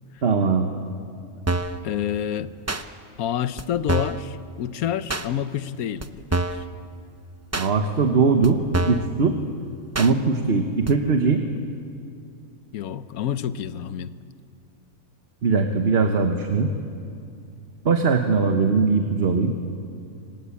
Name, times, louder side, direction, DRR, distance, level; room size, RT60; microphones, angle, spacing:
voice 1, 0.2-0.7 7.6-9.3 10.0-11.4 15.4-16.7 17.8-19.5, right 4 dB, 50° right, 5 dB, 1.3 m, -20 dB
sound 1, 1.5-1.8 2.7-2.8 3.6-3.7 3.9-4.2 5.1-5.3 6.0-6.1 6.3-6.7 7.5-7.7 8.4-8.5 8.7-9.1 9.9-10.1 10.9-11.0, right 2 dB, 20° right, 0.4 m, -25 dB
voice 2, 1.8-2.5 3.2-6.6 11.4-11.7 12.7-14.1, left 10 dB, 85° left, 13 dB, 1.2 m, -28 dB
25.5 x 19.0 x 8.5 m, 2.4 s
omnidirectional pair, 1.5 m